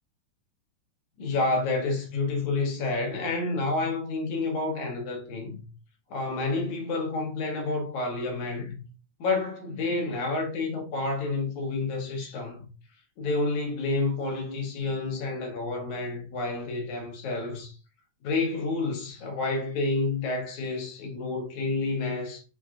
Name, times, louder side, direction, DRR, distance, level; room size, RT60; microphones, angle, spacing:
voice 1, 1.2-5.6 6.1-8.8 9.2-12.7 13.2-17.7 18.2-22.4, left 3 dB, 75° left, 2.6 m, -29 dB
6.0 x 2.3 x 3.6 m
omnidirectional pair, 3.5 m